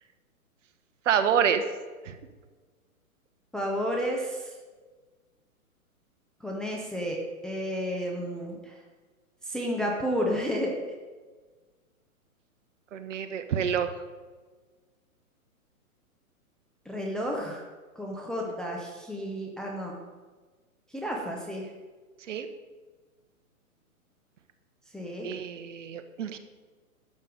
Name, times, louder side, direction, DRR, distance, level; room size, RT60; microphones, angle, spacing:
voice 1, 1.1-1.6 2.0-2.1 12.9-13.9 22.3-22.5 25.2-26.4, right 8 dB, 55° right, 9 dB, 1.2 m, -27 dB
voice 2, 3.5-4.5 6.4-7.2 7.4-8.7 9.4-10.7 16.9-17.6 18.0-20.0 20.9-21.7 24.9-25.3, equal, ahead, -2 dB, 0.6 m, -31 dB
11.5 x 7.5 x 5.2 m, 1.4 s
hypercardioid pair, 130°, 44 cm